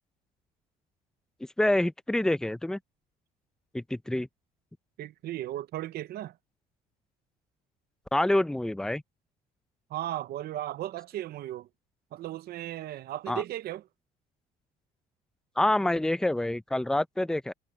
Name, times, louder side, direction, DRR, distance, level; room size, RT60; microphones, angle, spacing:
voice 1, 1.6-2.8 3.7-4.3 8.1-9.0 13.3-13.4 15.6-17.5, left 1 dB, 5° left, 0.6 m, -26 dB
voice 2, 5.0-6.4 9.9-11.7 12.1-13.9, right 13 dB, 65° right, 0.8 m, -36 dB
cardioid pair, 110°, 17 cm